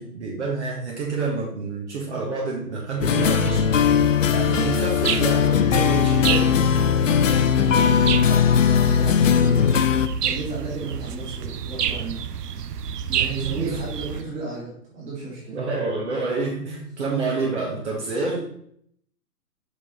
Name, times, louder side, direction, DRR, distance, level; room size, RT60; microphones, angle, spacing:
voice 1, 0.0-3.7 4.2-6.6 13.6-13.7 15.5-18.5, right 3 dB, 45° right, -3 dB, 1.5 m, -28 dB
sound 1, 3.0-10.1, left 8 dB, 55° left, 0.6 m, -19 dB
sound 2, 3.4-14.2, right 8 dB, 75° right, 0.7 m, -30 dB
voice 2, 7.6-9.8 10.2-12.2 13.1-15.6, right 3 dB, 15° right, -6 dB, 2.1 m, -33 dB
5.4 x 5.2 x 3.7 m, 0.66 s
hypercardioid pair, 150°, 48 cm